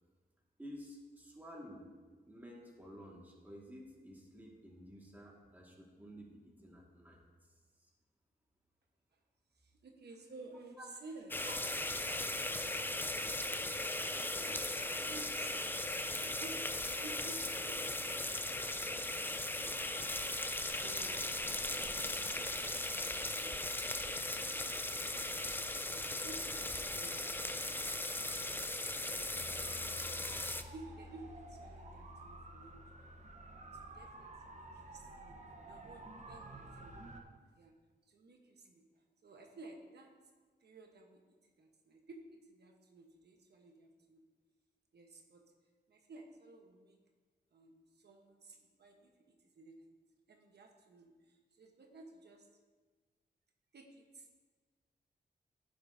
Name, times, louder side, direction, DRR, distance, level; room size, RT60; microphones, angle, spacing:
voice 1, 0.6-1.9 2.3-7.2 7.8-7.9 10.8-10.9, equal, 10° right, -2 dB, 1.8 m, -52 dB
voice 2, 9.5-11.5 14.1-18.4 18.8-19.5 20.8-21.4 22.1-23.6 24.2-25.0 25.5-28.4 29.0-30.0 30.7-32.8 33.8-35.4 35.6-37.0 37.6-37.7 38.1-40.1 40.6-42.2 42.5-44.3 44.9-45.4 45.9-47.0 47.5-49.9 50.3-52.5 53.7-54.3, right 2 dB, 75° right, 2 dB, 1.1 m, -55 dB
sound 1, 11.3-30.6, left 2 dB, 10° left, 0.5 m, -38 dB
sound 2, 19.6-37.2, right 2 dB, 40° right, 1.0 m, -54 dB
Bass guitar, 29.3-35.6, left 3 dB, 60° left, 1.0 m, -56 dB
15.0 x 7.7 x 2.7 m, 1.4 s
wide cardioid pair, 115°, 17 cm